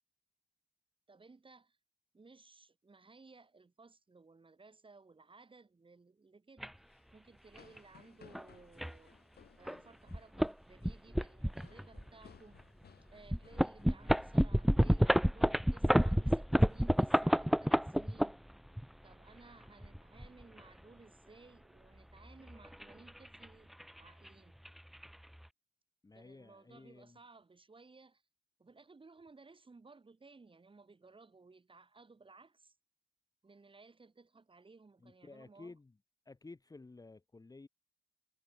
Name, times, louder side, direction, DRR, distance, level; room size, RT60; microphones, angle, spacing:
voice 1, 1.1-1.8 2.1-6.8 7.1-9.1 9.6-12.6 13.1-18.4 19.0-24.6 26.1-28.2 28.6-32.7 33.4-35.8, right 3 dB, 25° right, 7.8 m, -59 dB
sound 1, 6.6-6.7 7.6-7.8 8.3-8.4 8.8-8.9 9.7-9.8 10.1-10.5 10.8-12.1 12.6-12.7 13.3-18.8 19.7-20.6 22.3-23.5 23.7-24.0 24.3-24.4 24.7-25.1, equal, ahead, 0.4 m, -29 dB
sound 2, 6.8-14.9 15.1-15.4 15.8-16.1 16.6-17.7, left 8 dB, 55° left, 4.2 m, -63 dB
voice 2, 26.0-27.2 35.0-35.9 36.2-37.7, left 3 dB, 20° left, 1.6 m, -53 dB
cardioid pair, 90°, 20 cm